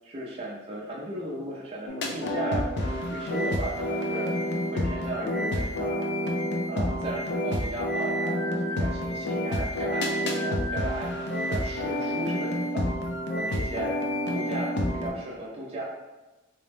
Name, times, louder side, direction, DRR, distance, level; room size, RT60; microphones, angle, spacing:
voice 1, 0.0-6.0 6.7-11.1 11.5-12.9 13.3-13.9 14.3-15.8, right 1 dB, 30° right, -4 dB, 0.4 m, -36 dB
sound 1, 1.9-15.1, equal, 60° left, 0.5 m, -29 dB
3.9 x 2.1 x 3.3 m, 1.1 s
head